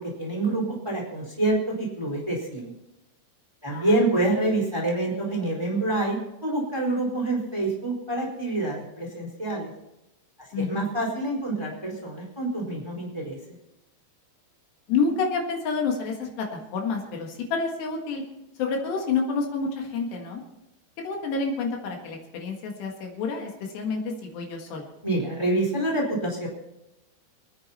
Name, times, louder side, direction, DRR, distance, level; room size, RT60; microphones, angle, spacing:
voice 1, 0.0-2.7 3.6-6.2 6.4-9.7 10.5-13.4 25.0-26.5, right 2 dB, 5° right, -2 dB, 3.4 m, -27 dB
voice 2, 3.7-4.0 10.5-10.9 14.9-18.2 18.6-20.4 21.0-24.9, left 4 dB, 70° left, 1 dB, 3.9 m, -28 dB
26.5 x 9.5 x 4.3 m, 0.91 s
omnidirectional pair, 5.2 m